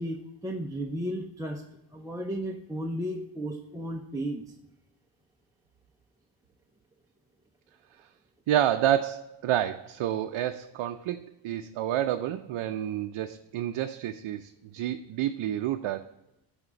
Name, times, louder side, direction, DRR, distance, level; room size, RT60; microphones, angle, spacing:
voice 1, 0.0-1.6 1.9-4.6, equal, 5° right, 0 dB, 0.5 m, -34 dB
voice 2, 8.5-16.1, right 11 dB, 70° right, 6 dB, 0.6 m, -29 dB
8.9 x 3.6 x 6.8 m, 0.87 s
wide cardioid pair, 140°, 49 cm